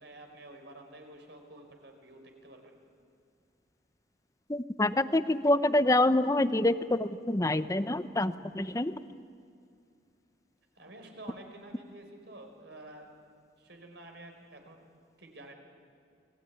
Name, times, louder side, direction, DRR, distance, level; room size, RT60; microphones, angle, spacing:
voice 1, 0.0-2.8 10.7-13.1 13.6-14.8 15.2-15.5, right 1 dB, 65° right, 4 dB, 4.8 m, -50 dB
voice 2, 4.5-8.9, left 1 dB, 15° left, 12 dB, 0.7 m, -26 dB
29.5 x 21.0 x 9.6 m, 2.3 s
head